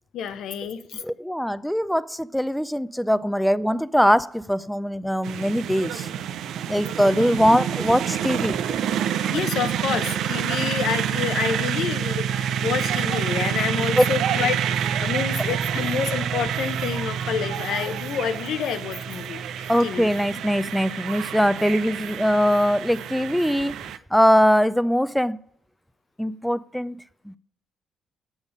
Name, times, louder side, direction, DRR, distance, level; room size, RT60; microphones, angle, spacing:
voice 1, 0.1-1.0 7.1-7.4 9.3-20.1, left 7 dB, 75° left, 0.7 m, -28 dB
voice 2, 0.9-6.1 6.7-8.6 14.0-14.1 19.7-23.8 24.1-25.4 26.2-27.0 27.3-27.4, equal, ahead, 0.4 m, -21 dB
sound 1, 5.2-24.0, right 9 dB, 80° right, 0.4 m, -27 dB
7.2 x 6.5 x 5.2 m
cardioid pair, 90°, 0 cm